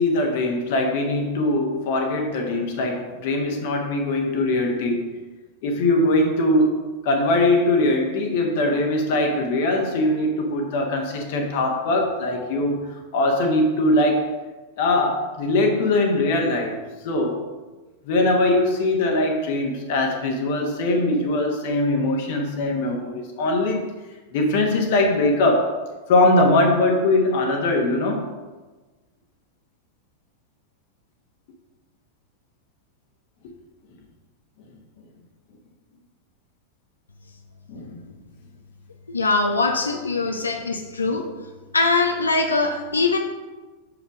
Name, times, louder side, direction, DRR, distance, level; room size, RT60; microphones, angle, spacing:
voice 1, 0.0-5.1 5.6-12.9 13.1-14.3 14.8-16.8 17.0-17.4 18.0-23.9 24.3-25.7 26.1-28.2 37.7-38.0, left 2 dB, 50° left, 2 dB, 1.1 m, -21 dB
voice 2, 39.1-41.2 41.7-43.2, left 3 dB, 75° left, 4 dB, 0.6 m, -22 dB
6.6 x 5.0 x 4.7 m, 1.2 s
figure-of-eight pair, 90°, 0 cm